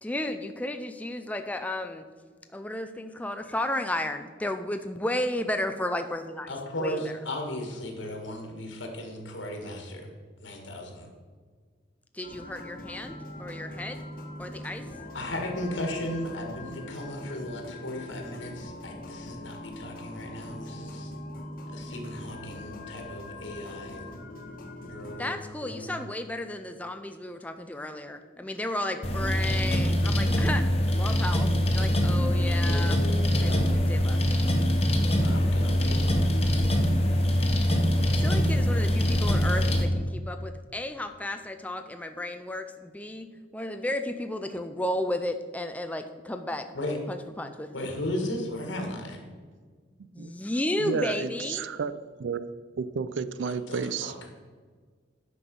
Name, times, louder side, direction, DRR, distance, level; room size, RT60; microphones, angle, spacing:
voice 1, 0.0-2.0 2.5-6.5 6.8-7.0 12.1-14.0 14.4-14.8 25.2-30.6 31.0-33.0 33.4-34.2 38.2-46.7 47.1-47.9 50.1-51.6, left 1 dB, 10° left, 0.4 m, -33 dB
voice 2, 6.5-10.0 10.4-11.1 15.1-21.1 21.7-24.1 24.8-25.9 32.6-33.6 35.1-36.1 46.7-47.0 47.7-49.2 53.7-54.3, left 1 dB, 75° left, 1.7 m, -36 dB
sound 1, 12.2-25.3, left 1 dB, 45° left, 1.3 m, -42 dB
sound 2, 29.0-39.8, equal, 30° left, 1.1 m, -24 dB
voice 3, 50.8-52.4 52.8-54.1, right 5 dB, 70° right, 0.4 m, -31 dB
9.7 x 6.1 x 5.3 m
head